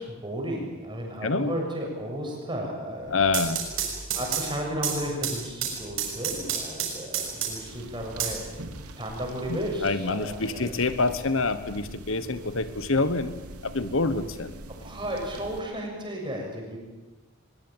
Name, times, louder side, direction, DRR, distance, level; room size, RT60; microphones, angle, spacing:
voice 1, 0.0-3.2 4.1-8.4 9.0-11.0 14.8-16.8, equal, 20° right, 0 dB, 7.1 m, -33 dB
voice 2, 1.2-1.5 3.1-3.6 9.5-13.3 13.6-14.5, left 3 dB, 65° left, 12 dB, 1.2 m, -26 dB
sound 1, 3.1-7.8 8.2-9.2, right 8 dB, 65° right, 6.7 m, -31 dB
sound 2, 7.7-15.6, right 1 dB, 90° right, 2.7 m, -43 dB
23.0 x 22.0 x 9.0 m, 1.1 s
head